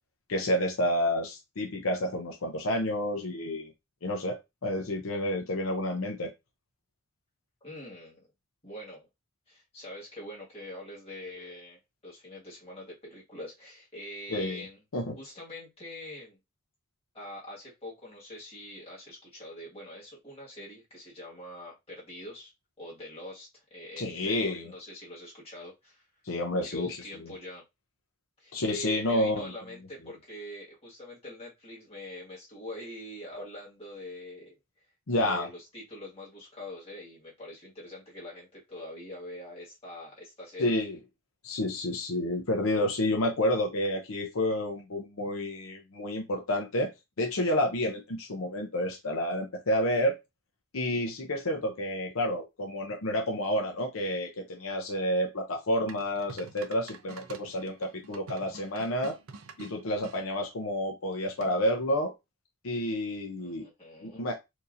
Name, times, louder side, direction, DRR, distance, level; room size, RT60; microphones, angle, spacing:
voice 1, 0.3-3.7 4.0-6.3 14.3-14.6 14.9-15.2 24.0-24.7 26.3-27.3 28.5-29.5 35.1-35.5 40.6-41.0 41.4-46.9 47.2-50.2 50.7-59.2 59.6-62.1 62.6-63.7 64.0-64.4, left 1 dB, 80° left, 0.8 m, -30 dB
voice 2, 7.6-8.3 8.6-9.1 9.5-14.8 15.2-16.4 17.1-22.5 22.8-26.1 26.6-27.6 28.4-40.8 63.4-64.2, left 1 dB, 30° left, 1.8 m, -44 dB
sound 1, 55.9-60.2 61.4-61.8, right 4 dB, 85° right, 0.6 m, -47 dB
4.5 x 2.7 x 2.6 m
head